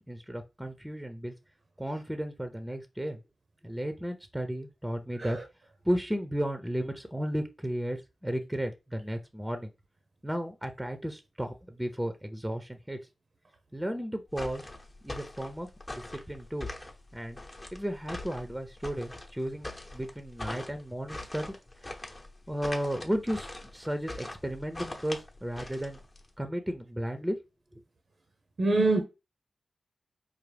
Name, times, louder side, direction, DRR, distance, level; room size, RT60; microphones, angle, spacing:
voice 1, 0.0-1.3 1.8-3.2 3.6-5.4 5.8-9.7 10.2-13.0 13.7-14.6 15.0-16.7 17.1-17.4 17.7-21.6 21.8-22.0 22.5-26.0 26.4-27.4, equal, 10° right, 0.6 m, -34 dB
sound 1, 14.3-26.3, left 2 dB, 30° left, 0.9 m, -42 dB
voice 2, 28.6-29.0, right 2 dB, 60° right, 0.7 m, -24 dB
4.8 x 2.0 x 3.3 m
cardioid pair, 45°, 0 cm